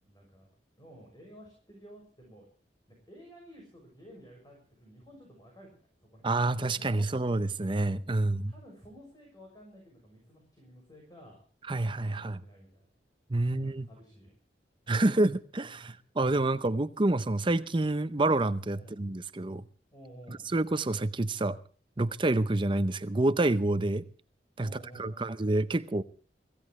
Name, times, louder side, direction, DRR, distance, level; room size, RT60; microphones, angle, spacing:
voice 1, 0.0-0.5 0.8-2.5 2.9-5.7 6.1-6.4 6.7-7.2 8.4-11.4 12.0-12.8 13.4-14.3 18.7-19.0 19.9-20.4 24.6-25.3, equal, 25° left, 6.5 m, -53 dB
voice 2, 6.2-8.5 11.7-12.4 13.3-13.9 14.9-19.6 20.3-21.6 22.0-24.0 24.6-24.7 25.0-26.0, right 2 dB, 30° right, 0.7 m, -28 dB
25.0 x 16.5 x 3.2 m
head